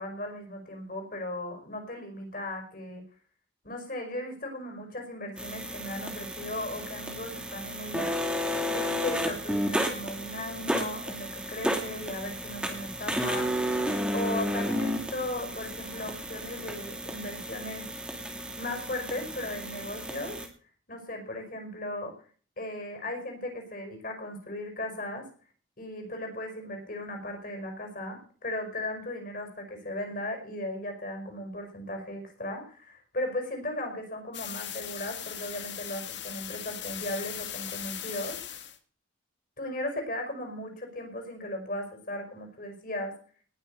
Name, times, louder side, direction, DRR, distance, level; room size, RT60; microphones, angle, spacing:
voice 1, 0.0-3.0 3.6-8.2 8.6-13.8 14.1-17.9 18.6-20.4 20.9-22.1 22.6-25.3 25.8-38.4 39.6-43.1, left 1 dB, 45° left, 3 dB, 5.3 m, -37 dB
sound 1, 5.4-20.5, equal, 5° right, 2.4 m, -32 dB
sound 2, 34.3-38.8, left 10 dB, 65° left, 1.6 m, -39 dB
19.0 x 6.8 x 6.7 m, 0.42 s
head